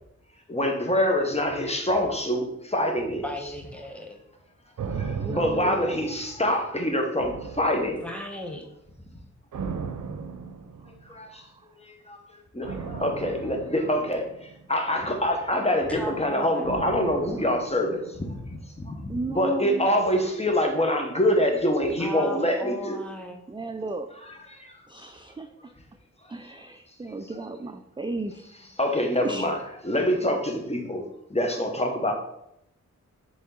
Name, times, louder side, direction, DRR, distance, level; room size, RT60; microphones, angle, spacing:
voice 1, 0.5-3.2 4.9-8.0 11.1-11.4 11.8-12.2 12.5-23.0 24.5-24.7 28.8-29.6 29.8-31.0 31.3-32.1, left 1 dB, 20° left, 3 dB, 1.1 m, -25 dB
voice 2, 3.2-4.2 8.0-8.7 15.9-16.7 22.0-23.4, equal, 5° left, 2 dB, 1.0 m, -36 dB
sound 1, 4.8-6.7 7.2-8.4 9.5-11.2 12.6-15.0 16.6-18.8 19.1-19.2, right 6 dB, 80° right, 0.7 m, -37 dB
voice 3, 5.2-6.1 10.8-11.8 19.1-19.9 23.5-24.1 24.9-25.7 26.3-28.5 29.2-29.5, right 3 dB, 15° right, 7 dB, 0.3 m, -35 dB
6.8 x 3.6 x 3.8 m, 0.78 s
wide cardioid pair, 80°, 30 cm